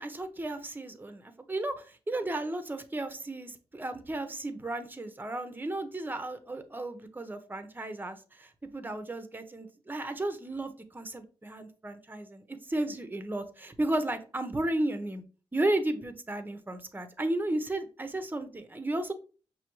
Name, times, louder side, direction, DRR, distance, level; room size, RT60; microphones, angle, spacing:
voice 1, 0.0-15.2 15.5-19.1, right 1 dB, 20° right, 9 dB, 0.8 m, -34 dB
5.7 x 2.8 x 3.1 m, 0.37 s
cardioid pair, 65°, 10 cm